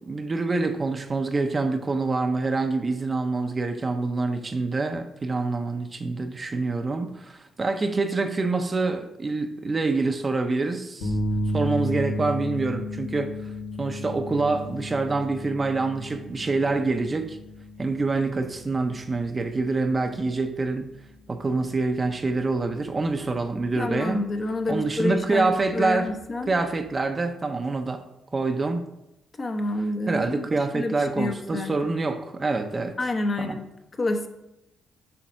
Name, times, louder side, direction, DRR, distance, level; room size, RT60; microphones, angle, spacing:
voice 1, 0.1-11.1 11.5-13.5 13.8-17.4 17.8-20.9 21.3-24.2 24.7-26.1 26.5-28.0 28.3-28.9 30.1-32.9 33.4-33.6, right 3 dB, 30° right, 7 dB, 0.7 m, -26 dB
sound 1, 11.0-26.9, equal, 90° left, 1.6 m, -35 dB
voice 2, 23.7-26.5 29.4-32.0 33.0-33.6 34.0-34.3, left 2 dB, 35° left, 6 dB, 0.9 m, -28 dB
7.2 x 4.1 x 6.3 m, 0.88 s
cardioid pair, 90°, 0 cm